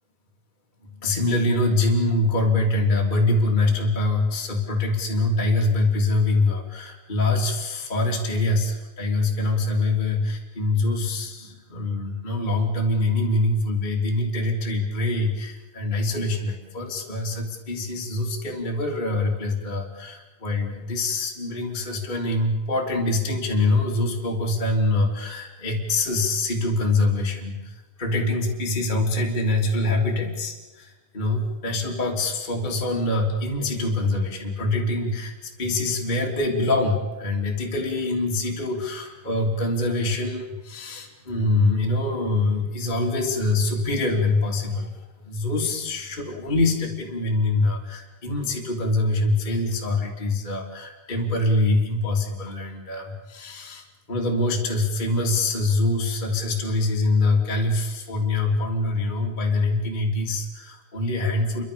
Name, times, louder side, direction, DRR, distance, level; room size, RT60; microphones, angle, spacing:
voice 1, 1.0-44.9 45.2-61.6, left 2 dB, 10° left, -1 dB, 2.7 m, -24 dB
29.5 x 24.5 x 7.1 m, 1.2 s
omnidirectional pair, 5.0 m